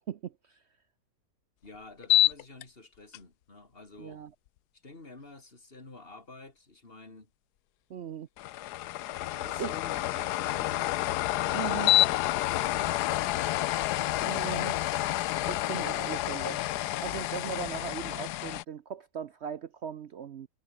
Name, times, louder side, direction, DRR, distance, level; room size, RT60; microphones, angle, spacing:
voice 1, 0.1-0.6 4.0-4.3 7.9-8.3 9.6-9.7 11.5-11.9 14.2-14.8 15.5-16.6 17.0-20.5, right 8 dB, 60° right, 0.7 m, -38 dB
voice 2, 1.6-4.2 4.7-7.3 9.1-10.9 11.3-14.1, left 2 dB, 35° left, 3.3 m, -50 dB
sound 1, 2.0-2.6 3.1-3.2 8.4-18.6, left 15 dB, 75° left, 1.1 m, -28 dB
omnidirectional pair, 1.8 m